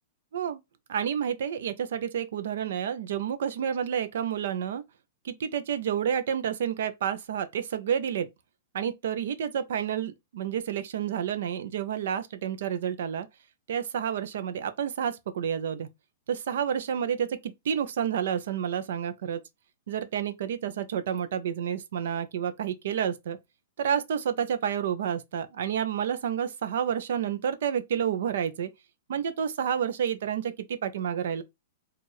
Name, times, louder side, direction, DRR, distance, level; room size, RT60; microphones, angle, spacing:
voice 1, 0.9-4.8 5.2-8.3 8.7-13.3 13.7-15.9 16.3-19.4 19.9-23.4 23.8-28.7 29.1-31.4, right 8 dB, 60° right, 0.7 m, -30 dB
4.5 x 2.5 x 3.1 m
supercardioid pair, 175°, 0 cm